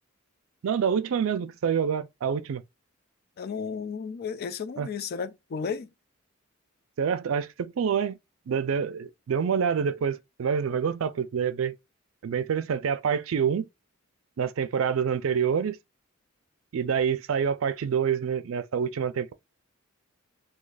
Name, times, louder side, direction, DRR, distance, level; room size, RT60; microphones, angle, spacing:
voice 1, 0.6-2.6 4.8-4.9 7.0-8.2 8.5-11.7 12.2-13.7 14.4-15.8 16.7-19.3, right 7 dB, 70° right, 0.4 m, -27 dB
voice 2, 3.4-5.9, left 6 dB, 50° left, 0.3 m, -33 dB
2.7 x 2.4 x 3.9 m
head